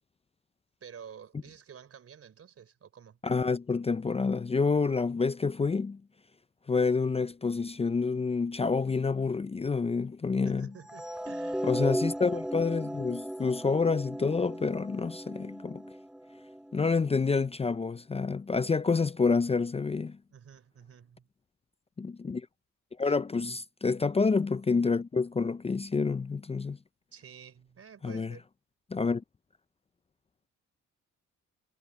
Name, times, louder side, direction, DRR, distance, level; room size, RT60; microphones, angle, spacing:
voice 1, 0.8-3.2 10.5-11.8 12.2-12.4 20.3-21.3 23.0-23.2 27.1-28.5, right 7 dB, 50° right, 3.7 m, -50 dB
voice 2, 3.2-6.0 6.7-10.7 11.6-15.8 16.7-20.2 22.0-22.5 23.0-26.8 28.0-28.3 28.9-29.2, left 4 dB, 20° left, 0.5 m, -28 dB
sound 1, 10.9-17.1, equal, 5° right, 1.7 m, -36 dB
cardioid pair, 90°, 30 cm